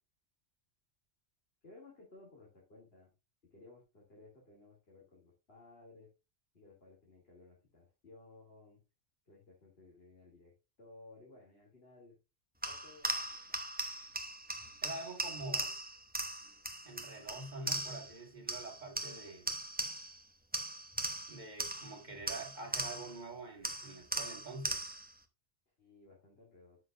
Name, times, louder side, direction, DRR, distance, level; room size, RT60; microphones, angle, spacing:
voice 1, 1.6-3.1 3.5-6.1 6.5-8.8 9.2-10.5 10.8-12.2 12.6-13.6 25.8-26.8, left 2 dB, 55° left, 3.1 m, -58 dB
sound 1, 12.6-18.2 18.5-20.2 20.5-23.2 23.6-25.1, right 1 dB, 10° right, 0.7 m, -39 dB
voice 2, 14.8-15.7 16.8-19.6 21.3-24.8, right 2 dB, 40° right, 2.2 m, -46 dB
10.0 x 6.4 x 2.5 m
omnidirectional pair, 1.2 m